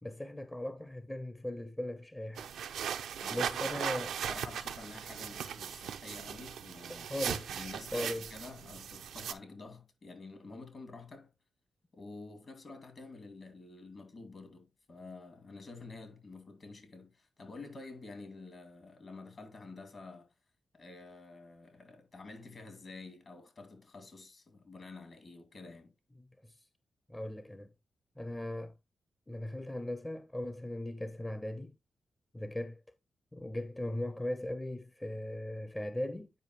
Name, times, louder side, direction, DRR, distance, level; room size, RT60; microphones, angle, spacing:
voice 1, 0.0-2.5 3.3-4.2 6.9-7.5 7.9-8.3 26.4-26.5 27.1-27.7 28.2-28.7 29.3-31.7 32.3-32.8 33.3-36.3, left 1 dB, 15° left, 0.7 m, -38 dB
sound 1, 2.4-9.3, right 8 dB, 90° right, 0.6 m, -38 dB
voice 2, 3.2-7.2 7.5-11.3 11.9-20.3 20.7-25.9, left 3 dB, 55° left, 2.3 m, -49 dB
9.1 x 4.9 x 3.0 m
cardioid pair, 60°, 0 cm